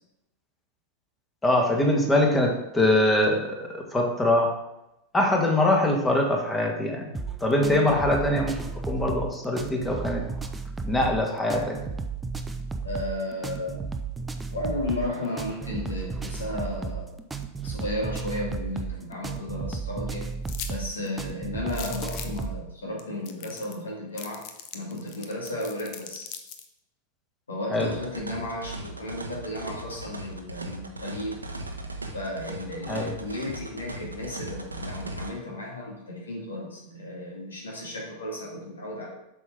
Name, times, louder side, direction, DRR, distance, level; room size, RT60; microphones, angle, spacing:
voice 1, 1.4-4.5 5.1-7.1 7.4-8.5 8.8-10.2 10.8-11.8 27.7-27.9 32.9-33.1, left 1 dB, 15° left, 1 dB, 1.7 m, -23 dB
sound 1, 7.1-22.6, right 5 dB, 10° right, 0.6 m, -34 dB
voice 2, 7.6-8.0 12.8-13.8 14.5-17.2 17.6-20.3 20.7-24.4 24.7-26.3 27.5-31.4 32.1-39.1, left 1 dB, 70° left, -2 dB, 2.1 m, -34 dB
sound 2, 20.5-20.7 21.1-21.2 21.7-22.4 23.0-23.1 23.3-23.8 24.2-26.7, left 9 dB, 45° left, 0.8 m, -39 dB
sound 3, 27.8-35.3, right 2 dB, 80° right, 0.9 m, -38 dB
7.9 x 6.3 x 3.8 m, 0.87 s
figure-of-eight pair, 90°, 0 cm